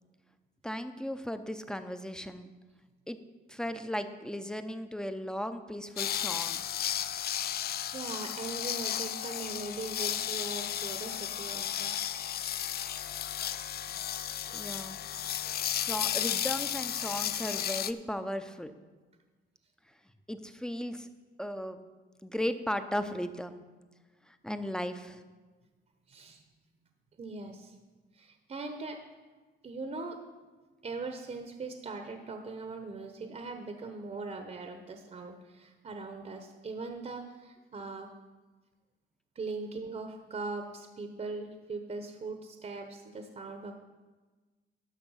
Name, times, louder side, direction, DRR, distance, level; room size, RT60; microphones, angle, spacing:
voice 1, 0.6-2.5 3.1-3.2 3.5-6.6 14.5-15.0 15.7-18.7 20.3-21.1 21.4-21.9 22.2-23.7 24.3-25.2, equal, 5° left, 10 dB, 0.7 m, -36 dB
sound 1, 6.0-17.9, left 10 dB, 50° left, 0.4 m, -34 dB
voice 2, 7.9-12.0 14.5-14.6 15.4-15.5 26.1-26.4 27.2-27.7 28.1-29.0 29.6-30.2 30.8-38.1 39.3-43.7, right 3 dB, 35° right, 6 dB, 0.9 m, -40 dB
11.5 x 5.8 x 5.6 m, 1.3 s
cardioid pair, 90°, 20 cm